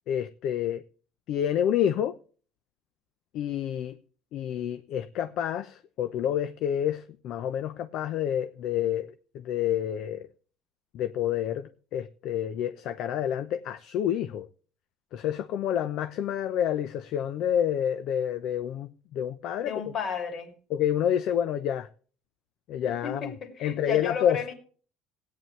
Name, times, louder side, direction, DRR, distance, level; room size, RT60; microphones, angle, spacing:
voice 1, 0.1-0.8 1.3-2.1 3.3-4.0 4.3-10.3 10.9-14.5 15.1-19.7 20.7-21.9 22.7-23.3 23.6-24.5, left 10 dB, 60° left, 0.8 m, -28 dB
voice 2, 19.6-20.6 22.8-24.5, left 7 dB, 40° left, 2.8 m, -33 dB
17.0 x 9.4 x 3.3 m
cardioid pair, 140°, 0 cm